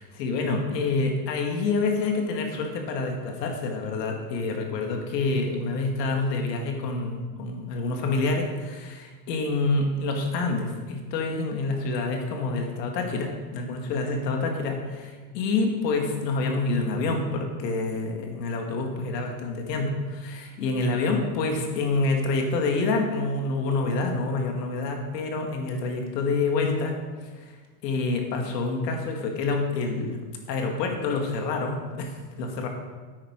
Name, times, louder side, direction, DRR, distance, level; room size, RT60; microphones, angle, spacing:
voice 1, 0.0-27.0 27.4-27.6 27.8-30.2 30.5-32.7, left 3 dB, 75° left, 2 dB, 2.4 m, -27 dB
9.9 x 8.9 x 4.8 m, 1.4 s
supercardioid pair, 130°, 50 cm